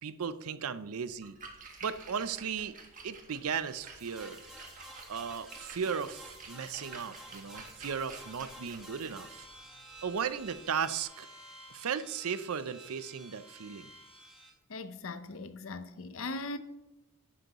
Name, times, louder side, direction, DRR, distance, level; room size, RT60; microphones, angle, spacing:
voice 1, 0.0-1.4 1.8-2.7 3.0-4.4 5.1-9.5 10.0-11.3 11.7-13.9, right 7 dB, 75° right, 0.5 m, -36 dB
Splash splatter, 1.1-11.0, right 4 dB, 35° right, 1.4 m, -51 dB
sound 1, 4.0-14.5, right 1 dB, 5° right, 1.6 m, -51 dB
voice 2, 14.7-16.6, left 3 dB, 60° left, 0.7 m, -39 dB
11.0 x 7.8 x 3.0 m
head